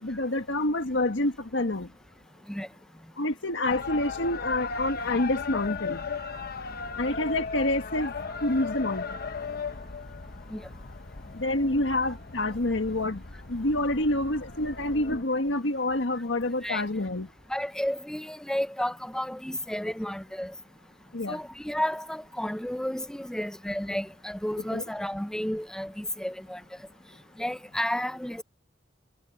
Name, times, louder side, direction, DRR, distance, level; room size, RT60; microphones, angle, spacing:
voice 1, 0.0-1.9 3.2-6.0 7.0-8.1 8.4-9.0 11.3-13.2 13.5-17.3 21.1-21.4 24.7-24.8, left 1 dB, 90° left, 1.7 m, -27 dB
sound 1, 3.6-15.2, left 5 dB, 55° left, 1.1 m, -37 dB
voice 2, 17.5-20.5 21.3-26.6 27.4-28.4, equal, 5° left, 0.5 m, -32 dB
head